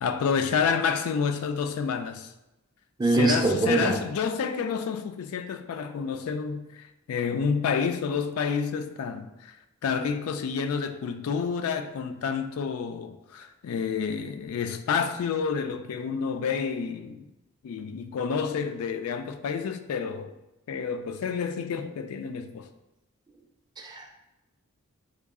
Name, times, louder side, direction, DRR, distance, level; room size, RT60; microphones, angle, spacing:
voice 1, 0.0-2.3 3.1-9.6 9.8-17.3 17.6-20.3 20.7-22.7, left 6 dB, 75° left, 0.3 m, -29 dB
voice 2, 3.0-4.0 23.8-24.1, right 2 dB, 20° right, 0.4 m, -23 dB
3.7 x 2.3 x 3.6 m
head